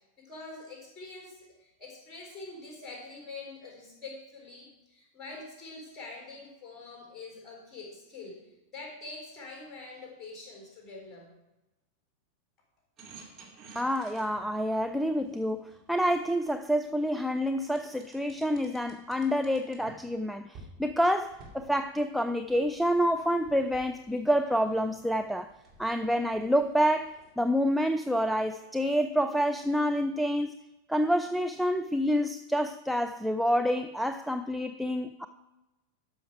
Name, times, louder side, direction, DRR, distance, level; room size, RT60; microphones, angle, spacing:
voice 1, 0.2-8.4 8.7-11.3, left 3 dB, 20° left, 0 dB, 4.0 m, -45 dB
sound 1, 13.0-16.9 17.7-20.2 20.5-20.7 21.2-27.3, right 3 dB, 25° right, 2.5 m, -54 dB
voice 2, 13.8-25.5 25.8-30.5 30.9-35.3, equal, ahead, 7 dB, 0.3 m, -28 dB
13.0 x 5.9 x 4.8 m, 0.99 s
figure-of-eight pair, 90°, 0 cm